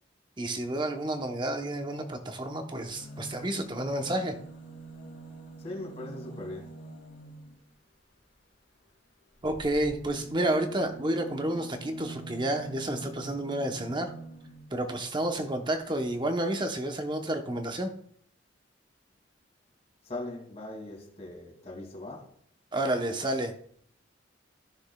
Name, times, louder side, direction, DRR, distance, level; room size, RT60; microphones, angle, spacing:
voice 1, 0.4-4.4 9.4-14.1 14.7-17.9 22.7-23.5, right 1 dB, 25° right, 0.9 m, -30 dB
sound 1, 2.9-7.7 9.3-14.8 15.7-15.8 16.0-16.1, right 2 dB, 70° left, 1.8 m, -46 dB
voice 2, 5.6-6.8 20.0-22.3, left 2 dB, 35° left, 2.5 m, -40 dB
15.0 x 6.2 x 2.3 m
head